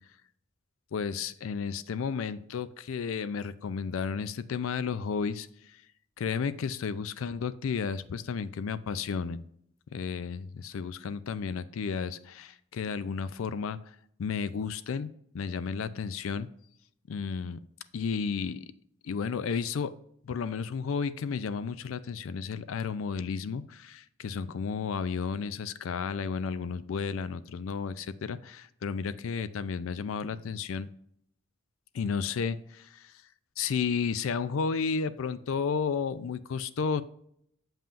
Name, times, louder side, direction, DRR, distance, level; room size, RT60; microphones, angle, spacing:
voice 1, 0.9-5.5 6.2-9.4 9.9-13.8 14.2-15.1 15.3-16.5 17.1-17.6 17.9-18.7 19.0-19.9 20.2-30.9 31.9-33.1 33.6-37.0, left 5 dB, 75° left, 14 dB, 0.4 m, -32 dB
7.2 x 5.6 x 2.5 m, 0.70 s
head